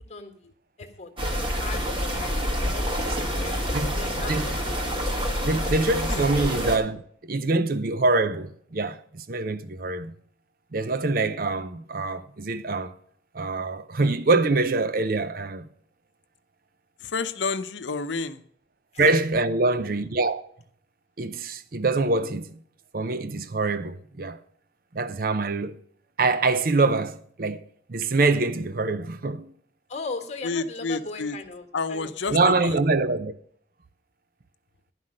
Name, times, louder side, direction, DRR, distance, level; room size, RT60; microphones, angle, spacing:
voice 1, 0.1-0.5 0.8-2.4 2.7-5.0 18.9-19.1 29.9-32.3, left 3 dB, 35° left, 1.6 m, -39 dB
sound 1, 1.2-6.8, equal, 25° right, 1.6 m, -27 dB
voice 2, 5.5-10.1 10.7-12.9 13.3-15.7 19.0-20.4 21.2-22.6 22.9-24.4 24.9-25.8 26.2-27.6 27.9-29.5 32.3-33.3, right 3 dB, 50° right, 0.6 m, -24 dB
voice 3, 17.0-18.4 30.4-31.4 31.7-32.7, left 4 dB, 75° left, 0.7 m, -29 dB
11.0 x 5.7 x 6.3 m
head